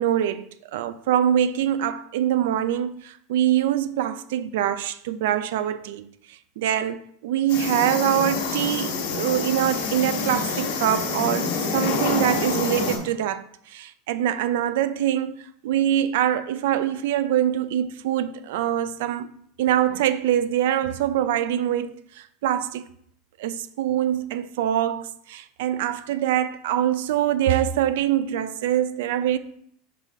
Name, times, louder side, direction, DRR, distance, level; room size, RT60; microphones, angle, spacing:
voice 1, 0.0-19.3 19.6-22.8 23.4-29.4, right 11 dB, 75° right, 0.4 m, -24 dB
sound 1, 7.5-13.0, left 4 dB, 85° left, 1.4 m, -27 dB
5.4 x 4.1 x 4.6 m
supercardioid pair, 135°, 0 cm